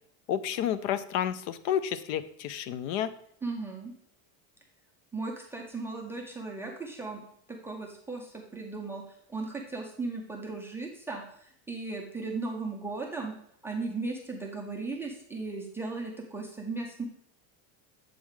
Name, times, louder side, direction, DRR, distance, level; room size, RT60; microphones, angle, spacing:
voice 1, 0.3-3.1, left 10 dB, 55° left, 14 dB, 0.5 m, -30 dB
voice 2, 3.4-3.9 5.1-7.2 7.5-9.0 9.3-13.3 13.6-17.0, right 3 dB, 5° right, 1 dB, 0.4 m, -36 dB
7.3 x 3.7 x 4.6 m, 0.65 s
cardioid pair, 165°, 42 cm